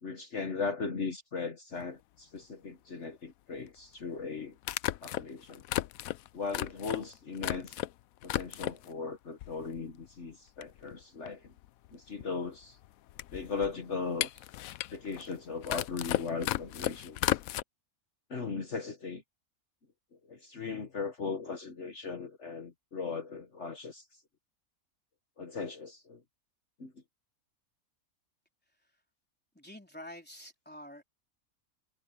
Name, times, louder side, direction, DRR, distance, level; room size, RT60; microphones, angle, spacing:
voice 1, 0.0-4.6 5.0-5.6 6.3-7.8 8.2-11.5 11.9-12.8 13.3-14.3 14.9-17.4 18.3-19.2 20.3-24.2 25.4-26.2 26.8-26.9, left 4 dB, 55° left, 1.7 m, -38 dB
sound 1, 1.8-1.9 3.7-3.8 4.6-7.9 8.2-8.9 9.4-10.1 10.3-10.4 10.6-17.6, left 14 dB, 75° left, 1.0 m, -35 dB
voice 2, 29.5-31.0, left 1 dB, 5° left, 3.7 m, -48 dB
omnidirectional pair, 1.5 m